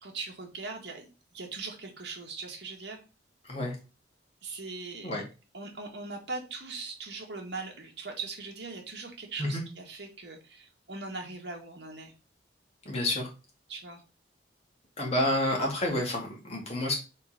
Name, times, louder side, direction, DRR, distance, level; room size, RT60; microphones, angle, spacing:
voice 1, 0.0-3.0 4.4-5.1 5.5-12.1 13.7-14.0 15.2-15.3, right 3 dB, 70° right, 2 dB, 1.8 m, -40 dB
voice 2, 3.4-3.8 5.0-5.2 9.4-9.6 12.9-13.3 15.0-16.9, left 1 dB, 35° left, -1 dB, 2.1 m, -29 dB
4.4 x 4.3 x 5.1 m, 0.30 s
head